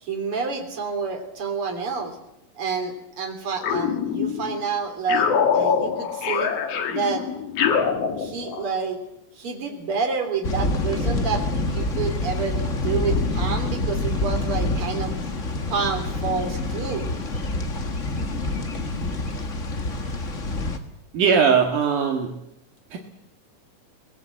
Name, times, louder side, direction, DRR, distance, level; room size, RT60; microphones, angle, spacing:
voice 1, 0.0-2.2 2.6-5.3 5.5-6.5 6.9-7.2 8.2-9.0 9.4-15.1 15.7-17.0, right 5 dB, 40° right, 4 dB, 4.1 m, -28 dB
sound 1, 3.6-4.6 5.1-8.7, left 6 dB, 55° left, 2.4 m, -24 dB
sound 2, 10.4-20.8, left 2 dB, 40° left, 1.2 m, -26 dB
voice 2, 21.1-22.3 22.9-23.0, right 6 dB, 70° right, 2 dB, 3.2 m, -19 dB
23.5 x 20.0 x 7.9 m, 0.83 s
omnidirectional pair, 3.9 m